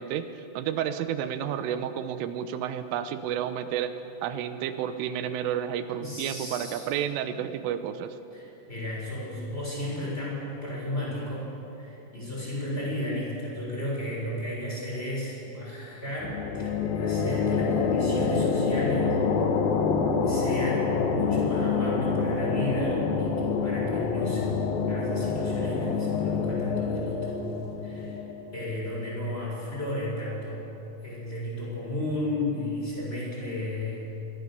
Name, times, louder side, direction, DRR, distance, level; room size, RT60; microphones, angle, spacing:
voice 1, 0.0-3.9 4.2-8.2, right 9 dB, 90° right, 10 dB, 3.5 m, -31 dB
voice 2, 5.9-6.8 7.3-7.4 8.3-19.2 20.2-24.6 24.9-27.4 27.8-28.2 28.5-30.6 31.0-34.2, left 1 dB, 10° left, -4 dB, 7.2 m, -33 dB
sound 1, 16.2-29.6, left 5 dB, 60° left, 2.7 m, -27 dB
25.5 x 22.5 x 7.0 m, 2.9 s
omnidirectional pair, 5.6 m